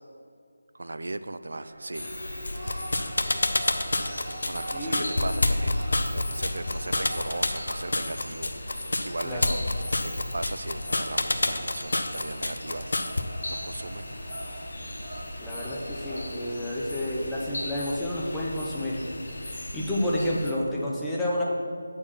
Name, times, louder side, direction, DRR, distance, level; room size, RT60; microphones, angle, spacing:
voice 1, 0.7-2.1 4.4-9.6 10.0-13.2 13.5-14.1, right 2 dB, 65° right, 12 dB, 0.4 m, -37 dB
sound 1, 1.6-20.1, right 1 dB, 35° right, 1.0 m, -45 dB
sound 2, 1.9-20.5, left 1 dB, 55° left, 1.2 m, -39 dB
sound 3, 2.4-13.2, left 2 dB, 70° left, 0.6 m, -27 dB
voice 2, 4.7-5.3 9.2-9.6 15.4-19.0 19.4-21.4, left 1 dB, ahead, -7 dB, 0.5 m, -30 dB
8.5 x 4.4 x 5.7 m, 2.3 s
figure-of-eight pair, 175°, 0 cm